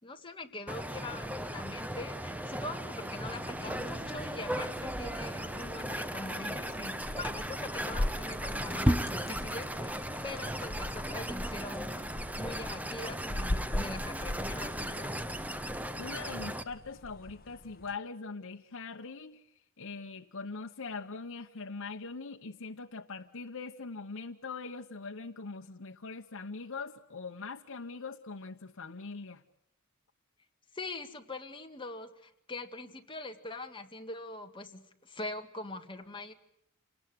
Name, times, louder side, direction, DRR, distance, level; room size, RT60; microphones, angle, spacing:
voice 1, 0.0-12.1 12.4-15.2 30.7-36.3, left 2 dB, 25° left, 4 dB, 2.1 m, -43 dB
sound 1, 0.7-16.6, right 1 dB, 5° right, 1.0 m, -36 dB
sound 2, 3.1-18.0, left 1 dB, 45° left, 1.2 m, -41 dB
voice 2, 16.0-19.4 19.8-29.4, left 4 dB, 70° left, 3 dB, 1.0 m, -42 dB
28.0 x 19.0 x 9.6 m, 0.75 s
head